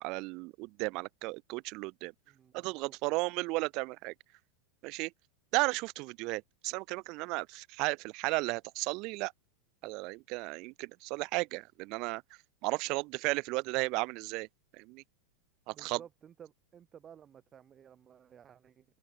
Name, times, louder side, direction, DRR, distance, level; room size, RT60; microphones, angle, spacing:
voice 1, 0.0-2.1 2.5-4.1 4.8-5.1 5.5-9.3 9.8-12.2 12.6-14.5 14.7-15.0 15.7-16.0, right 25 dB, 40° right, 0.4 m, -34 dB
voice 2, 2.3-2.9 15.7-18.9, right 9 dB, 25° right, 7.8 m, -55 dB
open air
figure-of-eight pair, 90°, 0 cm